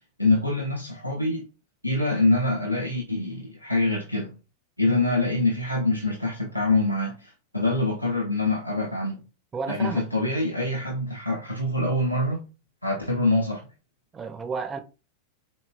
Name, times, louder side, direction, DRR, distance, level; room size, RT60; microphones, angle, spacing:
voice 1, 0.2-1.4 1.8-4.3 4.8-9.2 9.7-12.4 12.8-13.7, left 2 dB, 90° left, 0.5 m, -25 dB
voice 2, 9.5-10.2 14.1-14.8, right 5 dB, 20° right, 0.4 m, -32 dB
3.9 x 2.2 x 2.2 m
figure-of-eight pair, 90°, 0 cm